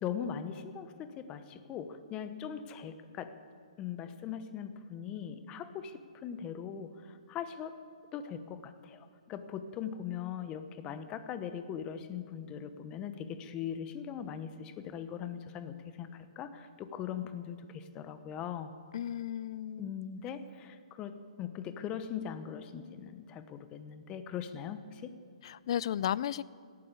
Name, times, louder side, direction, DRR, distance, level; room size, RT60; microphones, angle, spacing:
voice 1, 0.0-3.3 3.8-7.8 8.1-18.7 19.8-25.1, left 8 dB, 25° left, 11 dB, 1.0 m, -40 dB
voice 2, 18.9-19.9 25.4-26.4, left 10 dB, 55° left, 20 dB, 0.4 m, -34 dB
17.0 x 12.0 x 6.9 m, 2.3 s
hypercardioid pair, 140°, 4 cm